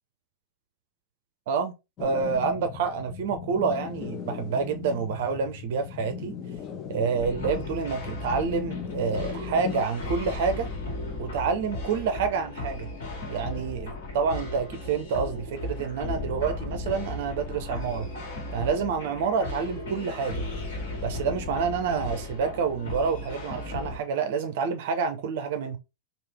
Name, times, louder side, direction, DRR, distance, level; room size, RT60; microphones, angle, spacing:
sound 1, 2.0-9.8, left 7 dB, 30° left, 0.5 m, -38 dB
voice 1, 2.0-6.4 6.9-10.7 11.2-12.9 13.3-18.1 18.5-20.4 21.0-25.8, right 5 dB, 55° right, 0.5 m, -28 dB
sound 2, 7.2-24.0, left 2 dB, 55° left, 1.7 m, -36 dB
3.2 x 2.4 x 3.3 m
figure-of-eight pair, 90°, 0 cm